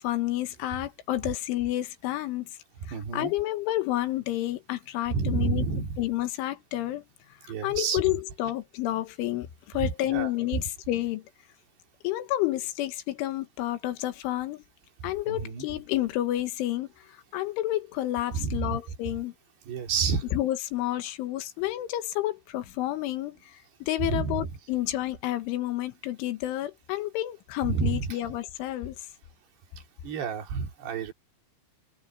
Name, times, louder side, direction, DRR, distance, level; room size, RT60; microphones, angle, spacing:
voice 1, 0.0-2.5 2.9-5.7 6.0-7.1 7.4-11.2 12.0-14.6 15.0-19.3 20.3-29.0, left 15 dB, 80° left, 3.8 m, -30 dB
voice 2, 2.8-3.3 5.1-6.0 7.5-8.0 9.8-10.6 15.0-15.7 18.3-18.8 19.0-19.1 19.7-20.2 24.0-24.5 27.6-28.2 30.0-31.1, right 5 dB, 60° right, 5.0 m, -30 dB
omnidirectional pair, 5.5 m